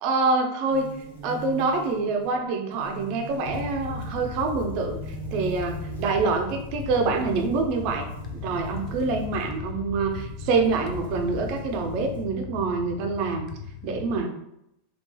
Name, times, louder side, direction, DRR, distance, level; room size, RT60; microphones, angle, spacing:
voice 1, 0.0-0.9 1.2-8.1 8.4-13.5 13.8-14.3, right 4 dB, 55° right, 3 dB, 0.5 m, -26 dB
sound 1, 0.7-9.5 10.1-12.2, right 4 dB, 85° left, 0.8 m, -41 dB
sound 2, 3.4-14.2, left 6 dB, 45° left, 0.3 m, -37 dB
2.9 x 2.3 x 2.2 m, 0.80 s
hypercardioid pair, 115°, 0 cm